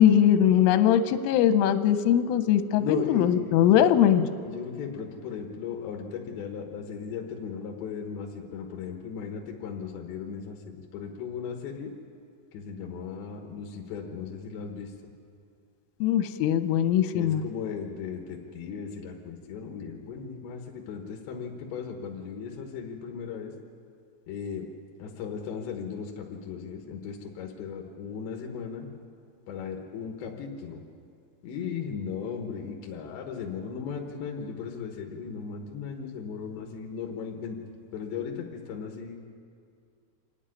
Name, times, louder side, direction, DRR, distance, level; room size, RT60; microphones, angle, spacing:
voice 1, 0.0-4.3 16.0-17.4, left 10 dB, 85° left, 11 dB, 3.4 m, -21 dB
voice 2, 2.8-4.0 4.4-11.9 12.5-14.9 17.1-23.5 24.3-24.6 25.0-28.9 29.5-30.8 31.4-37.6 37.9-39.2, left 6 dB, 70° left, 1 dB, 3.3 m, -36 dB
26.0 x 10.0 x 9.9 m, 2.4 s
omnidirectional pair, 5.6 m